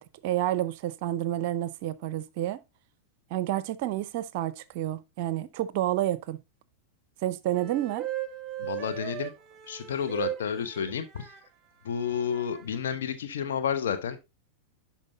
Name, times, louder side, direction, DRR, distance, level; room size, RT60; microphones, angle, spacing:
voice 1, 0.0-2.6 3.3-6.4 7.2-8.0, right 13 dB, 50° right, 0.5 m, -29 dB
sound 1, 7.5-11.4 12.2-12.8, right 13 dB, 25° right, 0.9 m, -37 dB
voice 2, 8.6-9.3 9.7-11.3 11.8-14.2, left 7 dB, 60° left, 1.0 m, -31 dB
11.5 x 4.4 x 2.7 m
figure-of-eight pair, 90°, 0 cm